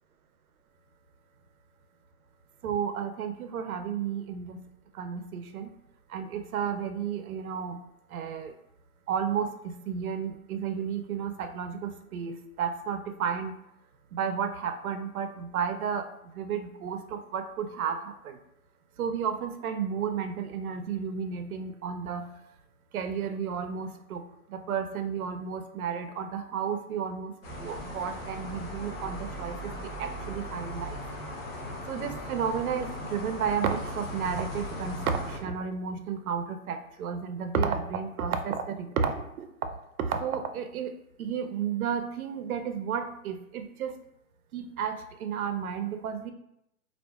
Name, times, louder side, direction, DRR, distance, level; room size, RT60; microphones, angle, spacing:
voice 1, 2.6-4.6 4.9-5.7 6.1-7.8 8.1-8.5 9.1-13.6 14.1-16.1 16.3-18.4 19.0-22.3 22.9-31.0 31.9-39.5 40.0-40.9 41.2-44.0 44.5-46.3, right 7 dB, 80° right, 7 dB, 0.6 m, -32 dB
sound 1, 27.4-35.4, equal, 45° left, 0.7 m, -38 dB
4.2 x 2.5 x 2.3 m, 0.81 s
hypercardioid pair, 175°, 43 cm